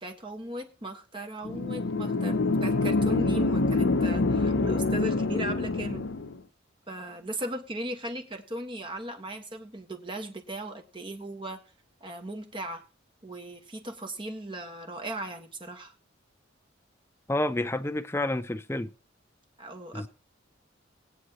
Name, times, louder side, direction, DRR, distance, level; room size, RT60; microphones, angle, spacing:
voice 1, 0.0-6.1 6.9-11.6 12.0-12.8 13.2-15.9 19.6-20.1, right 1 dB, 25° right, 1.6 m, -37 dB
sound 1, 1.5-6.4, left 3 dB, 60° left, 0.6 m, -26 dB
voice 2, 17.3-18.9 19.9-20.1, left 1 dB, 10° left, 0.4 m, -29 dB
19.0 x 9.0 x 3.0 m
head